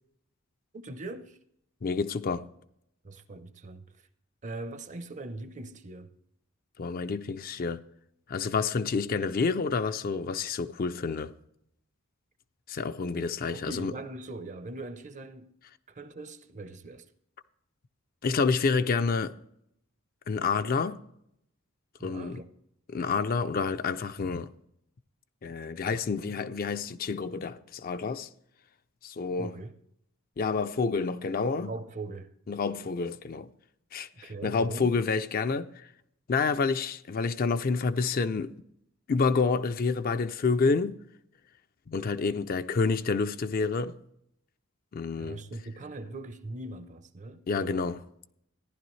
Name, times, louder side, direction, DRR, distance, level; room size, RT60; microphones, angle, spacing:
voice 1, 0.7-1.4 3.0-4.1 4.4-6.1 13.5-15.6 15.9-17.1 22.0-22.5 29.4-29.7 31.6-32.3 34.1-35.0 45.2-47.8, right 2 dB, 35° right, 0.6 m, -41 dB
voice 2, 1.8-2.5 6.8-7.8 8.3-11.3 12.7-13.9 18.2-19.4 20.3-21.0 22.0-22.4 22.9-24.5 25.4-28.3 29.0-29.5 30.4-31.7 32.5-33.5 33.9-35.9 36.3-38.5 39.1-41.0 41.9-44.0 44.9-45.4 47.5-48.0, left 4 dB, 45° left, 0.4 m, -28 dB
14.5 x 10.5 x 3.2 m
head